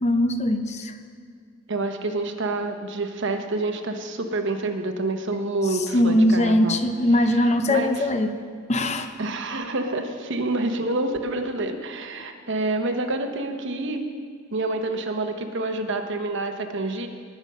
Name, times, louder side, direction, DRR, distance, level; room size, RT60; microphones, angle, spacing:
voice 1, 0.0-0.9 5.9-8.4 8.7-9.1, left 1 dB, 35° left, 8 dB, 0.6 m, -21 dB
voice 2, 1.7-6.8 7.2-8.0 9.2-14.0 14.5-17.1, right 2 dB, 60° right, 6 dB, 1.0 m, -28 dB
19.5 x 7.1 x 5.4 m, 2.1 s
head